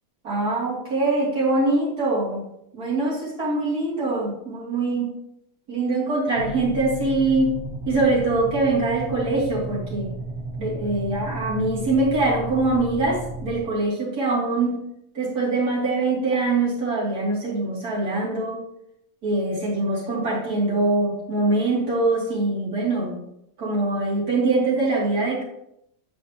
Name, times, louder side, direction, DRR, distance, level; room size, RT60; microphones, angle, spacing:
voice 1, 0.2-2.4 2.7-5.1 5.7-7.5 7.8-10.1 10.6-14.8 15.1-18.6 19.2-23.1 23.6-25.4, right 2 dB, 85° right, -6 dB, 3.2 m, -23 dB
sound 1, 6.4-13.6, right 2 dB, 50° right, 1.1 m, -33 dB
8.4 x 6.8 x 2.9 m, 0.78 s
omnidirectional pair, 1.6 m